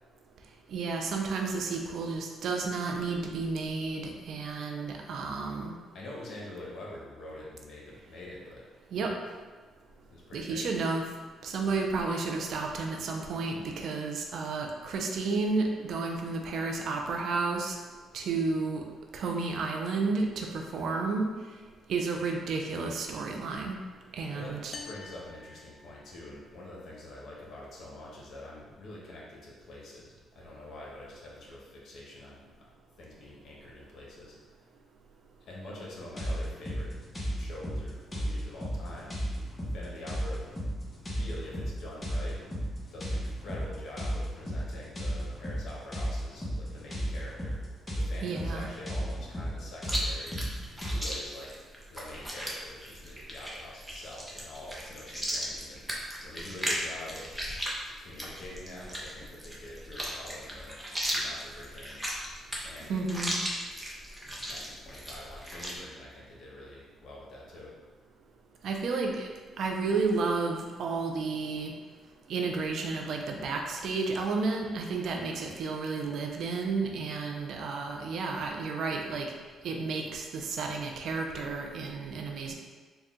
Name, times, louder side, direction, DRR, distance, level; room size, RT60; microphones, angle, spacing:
voice 1, 0.7-5.7 8.9-9.1 10.3-11.0 11.4-17.8 18.1-18.8 19.1-21.3 21.9-23.8 24.1-24.7 48.2-48.7 62.9-63.3 68.6-69.3 69.6-71.7 72.3-79.3 79.6-82.5, right 4 dB, 70° right, 2 dB, 0.5 m, -31 dB
voice 2, 5.9-8.6 9.9-10.8 11.6-11.8 24.3-32.6 33.0-34.6 35.4-36.9 37.4-39.1 39.7-40.8 41.0-42.4 42.9-47.6 47.9-50.4 50.9-51.5 51.9-56.0 56.2-57.3 58.0-62.1 62.6-63.4 64.4-67.7, left 1 dB, 65° left, -4 dB, 1.1 m, -45 dB
sound 1, 24.7-26.5, left 4 dB, 40° left, 0.4 m, -47 dB
sound 2, 36.2-51.0, equal, 20° left, 1.0 m, -34 dB
Chewing mastication, 49.8-65.8, equal, 10° right, 0.8 m, -36 dB
4.1 x 2.3 x 3.6 m, 1.4 s
cardioid pair, 90°, 0 cm